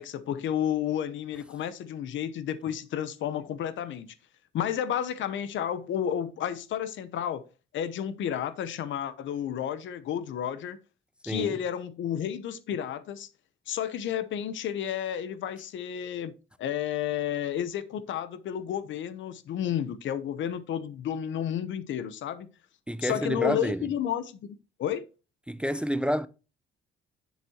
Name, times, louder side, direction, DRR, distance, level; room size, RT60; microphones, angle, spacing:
voice 1, 0.0-4.1 4.5-7.4 7.7-10.8 11.2-13.3 13.7-16.3 16.6-22.5 23.0-25.1, left 9 dB, 75° left, 0.8 m, -31 dB
voice 2, 11.3-11.6 22.9-23.9 25.5-26.3, equal, 5° right, 0.4 m, -29 dB
7.3 x 7.3 x 2.8 m
cardioid pair, 90°, 20 cm